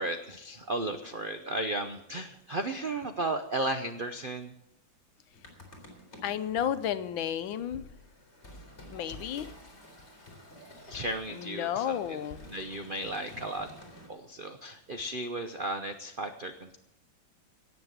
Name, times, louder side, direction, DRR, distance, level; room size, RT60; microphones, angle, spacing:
voice 1, 0.0-4.5 10.9-12.0 12.5-13.7 14.1-16.8, right 2 dB, 70° right, 7 dB, 0.5 m, -34 dB
sound 1, 5.3-14.1, left 1 dB, 35° left, 3.3 m, -50 dB
voice 2, 6.2-7.8 8.9-9.5 11.3-12.4, left 9 dB, 75° left, 13 dB, 1.5 m, -32 dB
17.5 x 6.9 x 8.1 m, 0.80 s
omnidirectional pair, 2.2 m